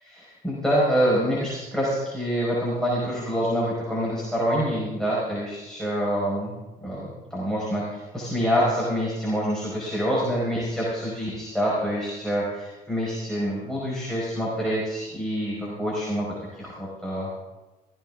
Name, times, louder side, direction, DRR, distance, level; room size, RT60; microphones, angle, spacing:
voice 1, 0.1-6.5 6.8-16.3 16.5-17.3, equal, 5° left, -7 dB, 4.9 m, -26 dB
16.0 x 15.5 x 3.7 m, 1.2 s
cardioid pair, 110°, 17 cm